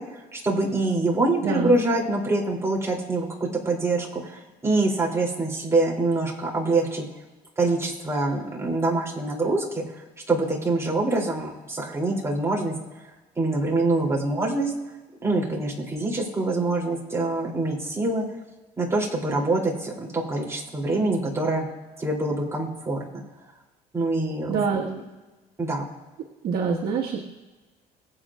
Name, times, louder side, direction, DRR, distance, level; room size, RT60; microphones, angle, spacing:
voice 1, 0.3-7.1 7.6-9.8 10.3-12.7 13.4-14.7 15.2-18.2 18.8-21.7 22.0-23.0 23.9-24.6 25.6-25.8, right 2 dB, 15° right, -2 dB, 3.1 m, -25 dB
voice 2, 1.4-1.8 24.5-24.9 26.4-27.3, right 5 dB, 65° right, -4 dB, 1.7 m, -25 dB
22.0 x 7.9 x 2.5 m, 1.2 s
cardioid pair, 110°, 17 cm